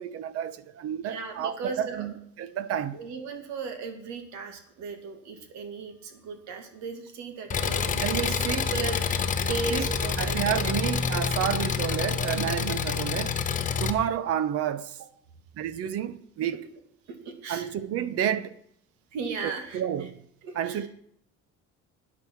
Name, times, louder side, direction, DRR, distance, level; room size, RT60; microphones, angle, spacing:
voice 1, 0.0-3.1 7.9-8.7 9.7-13.3 13.8-15.0 15.6-16.7 17.5-18.6 19.4-20.2 20.5-20.9, right 10 dB, 55° right, 0.9 m, -30 dB
voice 2, 1.0-2.1 2.9-8.3 8.7-10.7 17.2-17.7 19.1-19.8 20.4-20.9, right 4 dB, 75° right, 2.4 m, -36 dB
Engine, 7.5-13.9, left 6 dB, 25° left, 0.9 m, -27 dB
13.0 x 9.8 x 4.7 m
cardioid pair, 160°, 29 cm